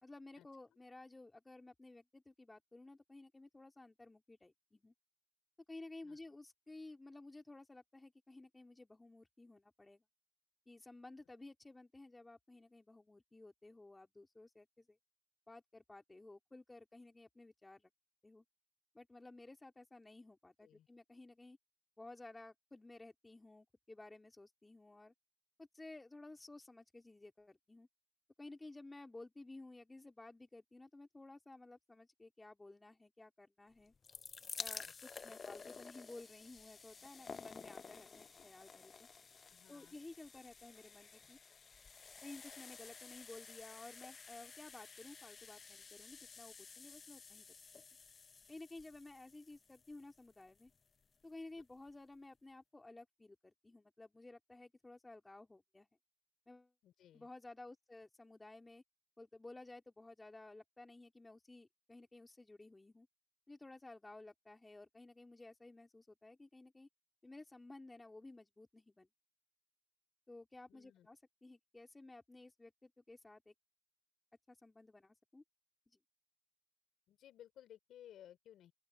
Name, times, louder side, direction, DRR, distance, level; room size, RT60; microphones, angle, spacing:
voice 1, 0.0-4.9 5.7-10.0 10.7-15.0 15.5-17.9 18.2-18.4 18.9-21.6 22.0-25.1 25.6-27.9 28.4-33.9 34.6-39.1 39.7-41.4 42.2-47.5 47.7-47.8 48.5-50.7 51.2-55.9 56.5-56.7 57.1-58.8 59.2-63.1 63.5-66.9 67.2-69.1 70.3-73.5 74.5-75.4, left 2 dB, 15° left, 3.7 m, -55 dB
sound 1, 33.8-50.8 51.6-51.7 51.9-52.0, left 5 dB, 40° left, 0.6 m, -53 dB
voice 2, 39.5-40.0 56.8-57.3 70.7-71.1 77.1-78.7, left 11 dB, 75° left, 4.7 m, -59 dB
open air
cardioid pair, 90°, 0 cm